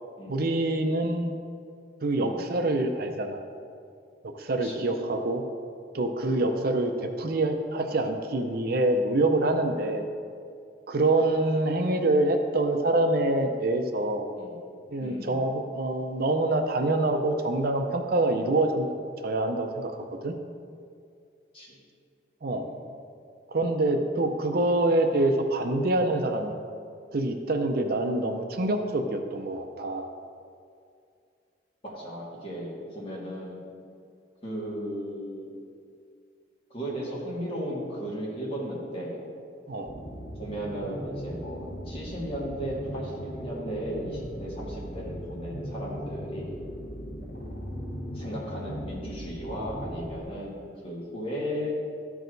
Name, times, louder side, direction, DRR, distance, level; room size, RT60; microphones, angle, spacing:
voice 1, 0.3-1.3 2.0-3.4 4.2-5.4 5.9-10.0 10.9-14.3 14.9-18.9 19.2-20.4 22.4-22.7 23.5-26.5 27.1-30.1 39.7-39.9, right 2 dB, 60° right, 5 dB, 0.6 m, -26 dB
voice 2, 15.0-15.4 21.5-21.8 22.6-22.7 31.8-33.7 34.4-35.5 36.7-39.2 40.3-46.6 48.1-51.8, equal, 35° left, -6 dB, 2.2 m, -36 dB
sound 1, 39.9-50.2, equal, 70° left, 1.2 m, -38 dB
13.5 x 4.8 x 3.9 m, 2.3 s
head